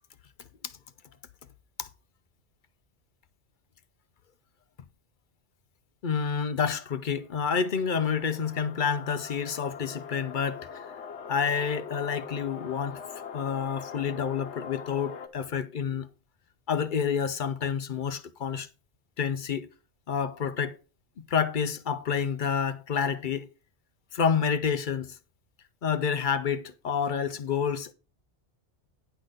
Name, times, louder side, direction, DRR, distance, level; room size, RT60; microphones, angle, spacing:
voice 1, 6.0-10.9 11.3-13.0 13.3-16.1 16.7-18.7 19.2-19.7 20.1-20.8 21.2-23.5 24.1-25.2 25.8-27.9, left 6 dB, 55° left, 0.7 m, -29 dB
sound 1, 7.2-15.3, left 6 dB, 75° left, 1.2 m, -42 dB
10.0 x 4.0 x 6.4 m
omnidirectional pair, 1.2 m